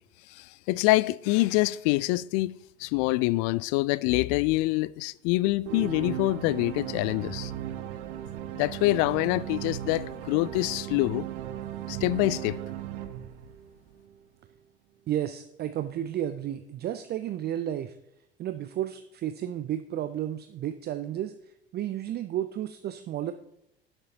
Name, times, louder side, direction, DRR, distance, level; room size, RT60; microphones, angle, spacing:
voice 1, 0.3-2.5 2.8-7.5 8.5-11.3 11.9-12.6, left 19 dB, 50° left, 0.4 m, -25 dB
sound 1, 5.7-14.1, right 11 dB, 55° right, 0.9 m, -37 dB
voice 2, 15.1-18.0 18.4-21.3 21.7-23.3, right 11 dB, 35° right, 0.5 m, -32 dB
17.0 x 6.8 x 2.9 m
figure-of-eight pair, 65°, 30 cm